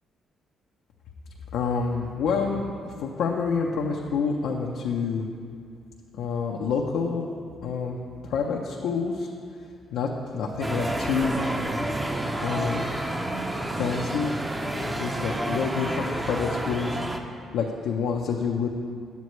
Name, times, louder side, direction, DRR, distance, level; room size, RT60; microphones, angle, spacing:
voice 1, 1.5-5.3 6.1-7.3 7.6-8.0 8.2-9.3 9.9-11.4 12.4-12.8 13.8-14.4 14.7-17.0 17.5-18.7, left 5 dB, 85° left, -1 dB, 0.6 m, -27 dB
sound 1, 10.6-17.2, right 1 dB, 15° right, 0.7 m, -29 dB
10.5 x 8.1 x 3.1 m, 2.3 s
cardioid pair, 90°, 0 cm